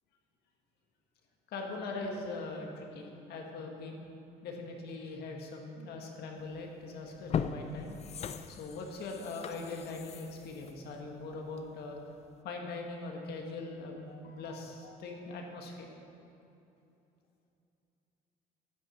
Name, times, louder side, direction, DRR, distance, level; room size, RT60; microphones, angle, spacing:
voice 1, 1.5-4.0 4.4-8.0 8.5-12.0 12.4-15.9, left 3 dB, 70° left, 1 dB, 1.7 m, -41 dB
sound 1, 6.5-6.7 7.1-11.8 12.2-12.3, left 7 dB, 40° left, 0.5 m, -39 dB
11.0 x 7.5 x 6.4 m, 2.8 s
cardioid pair, 110°, 17 cm